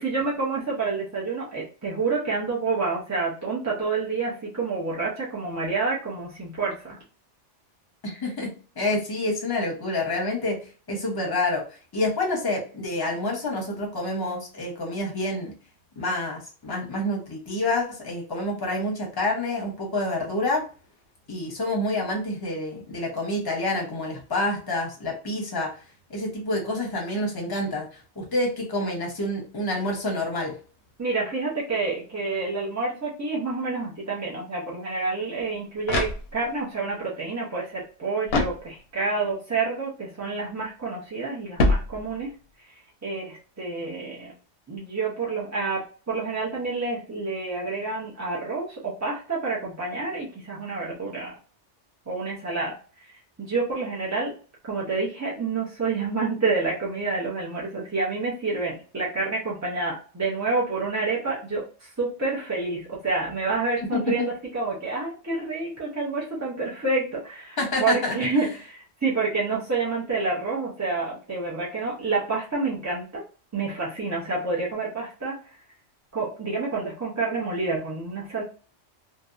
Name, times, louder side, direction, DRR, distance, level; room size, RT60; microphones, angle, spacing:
voice 1, 0.0-7.0 31.0-42.3 43.0-44.3 44.7-51.3 52.1-52.7 53.4-54.3 54.6-73.2 73.5-75.4 76.1-78.4, right 3 dB, 25° right, -5 dB, 0.4 m, -28 dB
voice 2, 8.0-10.6 10.9-11.6 11.9-15.5 16.0-20.6 21.3-25.7 26.1-27.9 28.2-30.6 63.9-64.3 67.6-68.5, left 2 dB, 25° left, 0 dB, 0.7 m, -28 dB
sound 1, 35.4-36.7 38.3-39.2 41.6-42.5, left 2 dB, 65° left, 0.8 m, -26 dB
2.7 x 2.1 x 2.3 m, 0.38 s
omnidirectional pair, 1.2 m